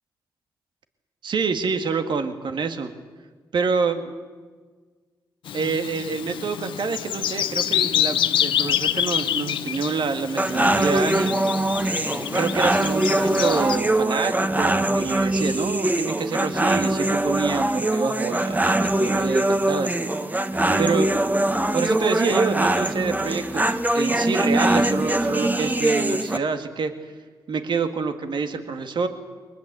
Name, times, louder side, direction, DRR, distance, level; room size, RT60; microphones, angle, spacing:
voice 1, 1.2-2.9 3.5-4.0 5.5-11.4 12.1-20.3 20.8-21.2 21.7-26.9 27.5-29.1, right 5 dB, 65° right, 7 dB, 2.0 m, -27 dB
Bird vocalization bird call bird song, 5.5-13.8, left 10 dB, 85° left, 0.8 m, -27 dB
sound 1, 10.4-26.4, right 1 dB, 20° right, 1.5 m, -22 dB
23.0 x 19.5 x 8.2 m, 1.4 s
supercardioid pair, 50°, 8 cm